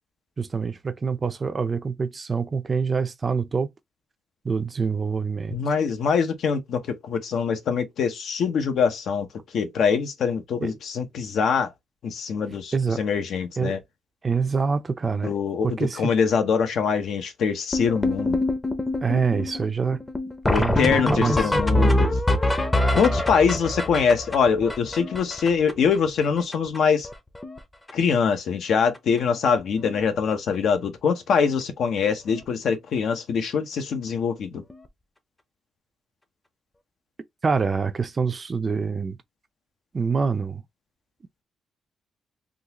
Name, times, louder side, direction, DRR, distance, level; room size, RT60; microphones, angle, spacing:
voice 1, 0.4-3.7 4.4-5.6 10.6-10.7 12.7-13.0 13.6-13.8 14.2-15.3 15.6-16.1 19.0-20.0 20.5-21.3 37.4-39.2 39.9-40.6, right 5 dB, 30° right, 0.5 m, -25 dB
voice 2, 5.5-9.3 9.5-11.7 12.0-13.8 15.2-18.4 20.5-22.2 23.0-27.1 27.9-34.6, left 6 dB, 80° left, 0.9 m, -23 dB
sound 1, 17.7-25.9 26.2-26.3 26.5-26.8 27.0-27.6 27.9-28.1 28.9-29.0 29.5-29.6 29.8-30.0 32.3-32.4 34.7-34.8, left 1 dB, 15° left, 0.6 m, -24 dB
3.8 x 2.4 x 2.9 m
cardioid pair, 125°, 0 cm